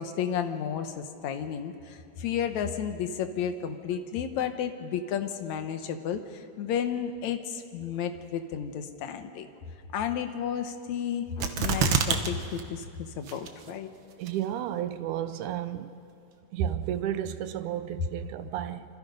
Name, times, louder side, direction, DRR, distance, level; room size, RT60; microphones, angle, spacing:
voice 1, 0.0-9.5 9.9-12.9 13.2-13.9, left 8 dB, 65° left, 2.1 m, -32 dB
sound 1, 11.4-12.3 12.6-12.7 13.3-13.7 14.3-14.4, right 6 dB, 90° right, 1.1 m, -25 dB
voice 2, 14.2-15.9 16.5-18.9, right 10 dB, 75° right, 2.0 m, -32 dB
26.5 x 25.5 x 5.4 m
omnidirectional pair, 4.0 m